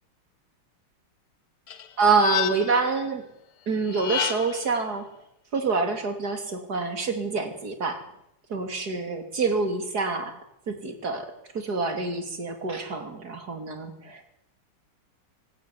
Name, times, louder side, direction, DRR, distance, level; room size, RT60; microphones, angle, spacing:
sound 1, 1.7-2.9 3.8-4.7, left 9 dB, 90° left, 2.2 m, -30 dB
voice 1, 2.0-3.2 3.7-5.0 5.5-8.0 8.5-10.3 10.7-11.3 11.5-14.2, right 4 dB, 45° right, 7 dB, 3.4 m, -26 dB
24.5 x 13.0 x 9.5 m, 0.77 s
omnidirectional pair, 2.3 m